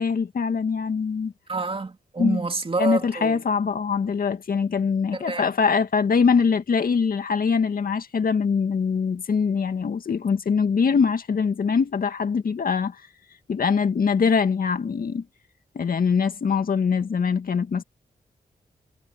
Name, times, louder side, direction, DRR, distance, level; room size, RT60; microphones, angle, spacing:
voice 1, 0.0-1.3 2.2-2.4 2.8-13.0 13.5-15.2 15.8-17.8, left 5 dB, 65° left, 2.0 m, -23 dB
voice 2, 1.5-3.4 5.2-5.4, right 3 dB, 35° right, 2.7 m, -27 dB
cardioid pair, 75°, 16 cm